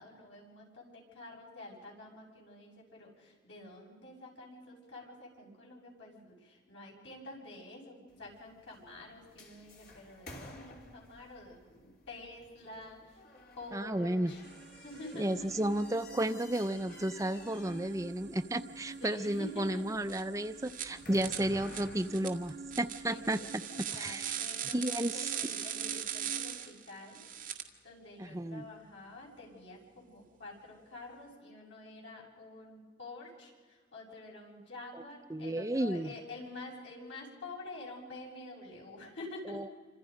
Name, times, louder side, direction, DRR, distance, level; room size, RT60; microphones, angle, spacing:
voice 1, 0.0-13.2 13.6-14.4 14.8-15.5 19.0-20.0 23.1-27.2 27.8-39.7, left 2 dB, 75° left, -2 dB, 7.6 m, -48 dB
sound 1, 8.1-23.5, left 2 dB, 50° left, 3.2 m, -54 dB
voice 2, 13.7-14.3 15.2-23.4 23.9-24.3 24.7-25.3 28.2-28.6 35.3-36.1 39.5-39.6, right 1 dB, 15° right, 9 dB, 0.6 m, -33 dB
sound 2, 14.4-26.7, right 4 dB, 65° right, 0.8 m, -50 dB
sound 3, 20.1-20.2 20.6-20.9 21.2-27.6, right 10 dB, 45° right, 1.9 m, -39 dB
28.0 x 26.0 x 5.2 m, 1.5 s
head